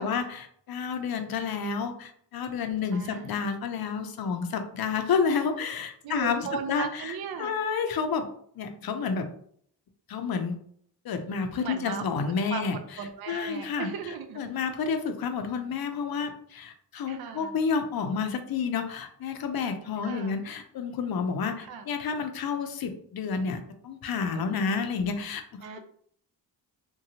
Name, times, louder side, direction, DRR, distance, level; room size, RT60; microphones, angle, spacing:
voice 1, 0.0-8.3 8.6-9.3 10.1-10.5 11.0-12.8 13.3-13.9 14.4-25.4, left 5 dB, 50° left, 7 dB, 0.6 m, -30 dB
voice 2, 2.9-3.5 6.0-7.5 11.6-12.1 12.5-14.6 17.1-17.6 20.0-20.4 21.6-21.9 25.6-25.8, right 6 dB, 50° right, 7 dB, 0.5 m, -37 dB
2.8 x 2.2 x 2.7 m, 0.63 s
supercardioid pair, 55°, 48 cm